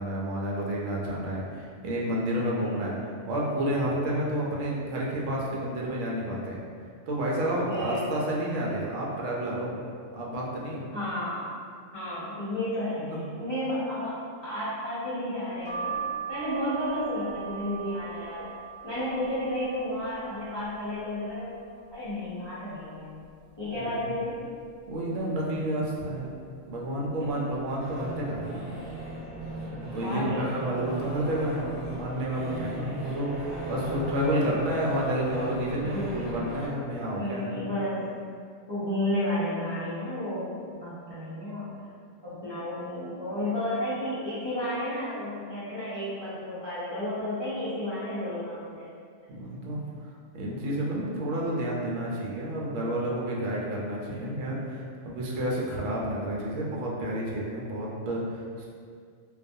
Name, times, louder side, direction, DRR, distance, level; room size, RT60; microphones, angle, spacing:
voice 1, 0.0-2.9 3.3-6.6 7.1-9.8 10.1-10.9 13.0-13.2 23.8-24.0 24.9-26.3 26.7-28.7 29.7-37.5 49.3-49.8 50.3-58.7, right 1 dB, 75° right, -4 dB, 0.9 m, -30 dB
voice 2, 7.7-8.1 10.9-11.5 11.9-14.1 14.4-16.0 16.3-18.5 18.8-21.5 21.9-23.2 23.6-24.4 27.2-27.6 30.0-30.7 34.4-34.6 35.8-36.1 37.1-38.0 38.7-41.7 42.2-48.9, left 1 dB, 35° left, -14 dB, 0.4 m, -32 dB
sound 1, 15.6-21.3 21.8-22.5 22.9-23.0 23.2-24.3 24.8-25.2 26.0-26.3 27.1-27.3 27.6-27.8, right 6 dB, 10° right, 0.9 m, -40 dB
sound 2, 27.8-36.7, right 1 dB, 40° right, 0.8 m, -38 dB
2.4 x 2.2 x 2.6 m, 2.1 s
omnidirectional pair, 1.3 m